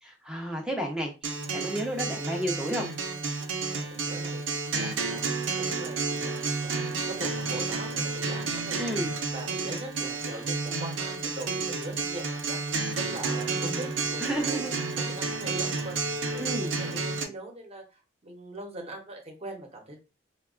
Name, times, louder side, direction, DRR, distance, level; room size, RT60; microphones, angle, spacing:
voice 1, 0.0-2.9 8.8-9.1 13.5-13.8 14.2-14.7 16.4-16.7, equal, 5° right, 1 dB, 0.6 m, -32 dB
Acoustic guitar, 1.2-17.2, right 4 dB, 75° right, 0.5 m, -31 dB
voice 2, 3.7-6.8 7.1-9.0 9.3-12.6 12.9-20.0, right 2 dB, 35° right, 2 dB, 0.9 m, -42 dB
4.5 x 2.2 x 2.4 m, 0.29 s
head